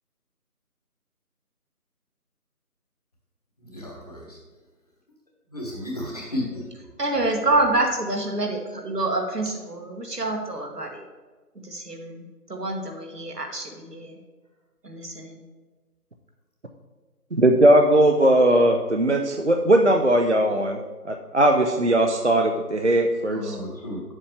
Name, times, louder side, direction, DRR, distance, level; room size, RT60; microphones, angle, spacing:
voice 1, 3.6-4.4 5.5-6.6 7.1-7.2 23.3-24.0, left 1 dB, 25° left, -2 dB, 1.3 m, -33 dB
voice 2, 7.0-11.0 11.6-12.2 12.5-14.2 14.8-15.4, right 2 dB, 90° right, 3 dB, 1.7 m, -27 dB
voice 3, 17.4-20.8 21.0-23.6, right 1 dB, 50° right, 4 dB, 0.5 m, -19 dB
8.6 x 7.2 x 3.3 m, 1.3 s
figure-of-eight pair, 165°, 46 cm